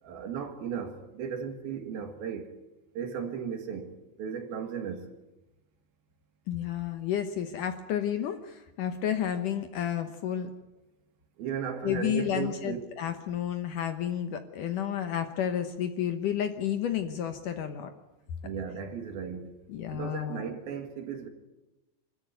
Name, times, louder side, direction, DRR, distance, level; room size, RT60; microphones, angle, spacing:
voice 1, 0.0-2.5 3.0-5.1 11.4-12.8 18.4-19.5 19.9-21.3, right 7 dB, 70° right, 3.7 m, -36 dB
voice 2, 6.5-10.5 11.8-17.9 19.7-20.5, left 9 dB, 70° left, 2.2 m, -31 dB
25.0 x 14.0 x 9.5 m
omnidirectional pair, 4.6 m